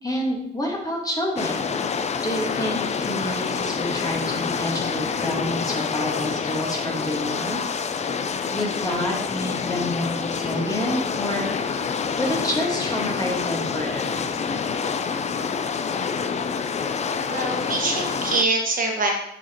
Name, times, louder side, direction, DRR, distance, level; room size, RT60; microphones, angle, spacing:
voice 1, 0.0-1.7 2.2-7.9 8.5-11.5 12.2-14.2, left 1 dB, 20° left, -1 dB, 1.5 m, -28 dB
sound 1, 1.4-18.4, left 6 dB, 35° left, 0.4 m, -27 dB
voice 2, 17.2-19.1, right 3 dB, 45° right, 0 dB, 1.4 m, -24 dB
6.8 x 4.9 x 3.0 m, 0.76 s
cardioid pair, 90°, 20 cm